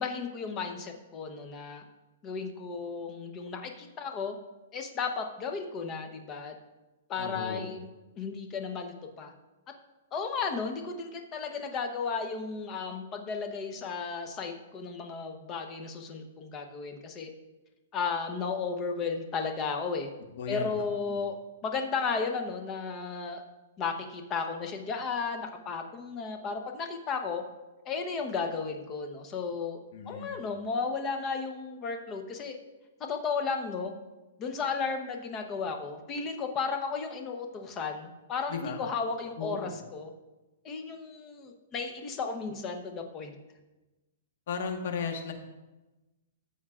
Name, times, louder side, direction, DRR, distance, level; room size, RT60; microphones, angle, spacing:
voice 1, 0.0-1.8 2.2-4.4 4.7-6.5 7.1-7.9 8.2-9.3 10.1-17.3 17.9-20.1 20.5-23.4 23.8-27.4 27.8-29.8 30.1-32.6 33.0-33.9 34.4-40.1 40.6-43.4, left 5 dB, 25° left, 5 dB, 1.0 m, -34 dB
voice 2, 7.2-7.7 20.4-21.2 29.9-30.4 38.5-38.8 39.4-39.7 44.5-45.3, left 5 dB, 60° left, 4 dB, 1.4 m, -36 dB
14.5 x 7.1 x 2.5 m, 1.1 s
hypercardioid pair, 150°, 0 cm